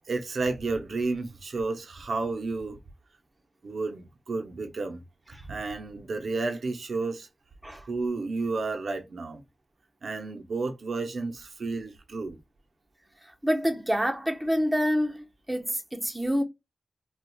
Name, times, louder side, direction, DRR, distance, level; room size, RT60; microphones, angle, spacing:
voice 1, 0.1-2.8 3.6-5.0 5.5-7.3 7.9-9.4 10.0-12.4, right 3 dB, 80° right, 0.7 m, -31 dB
voice 2, 13.4-15.2 15.5-16.4, equal, 10° right, 0.9 m, -26 dB
4.3 x 2.3 x 2.2 m
cardioid pair, 60°, 0 cm